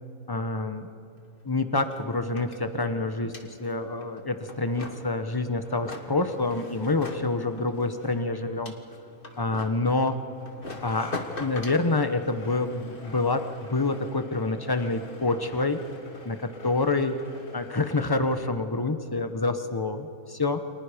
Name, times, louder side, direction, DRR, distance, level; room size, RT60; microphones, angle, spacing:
voice 1, 0.3-0.9 1.4-8.7 9.4-10.2 10.8-15.8 16.2-17.2 17.5-20.6, left 3 dB, 15° left, 8 dB, 1.1 m, -27 dB
sound 1, 1.2-1.3 1.5-18.1, left 3 dB, 40° left, 1.9 m, -43 dB
30.0 x 25.5 x 5.2 m, 2.8 s
omnidirectional pair, 1.5 m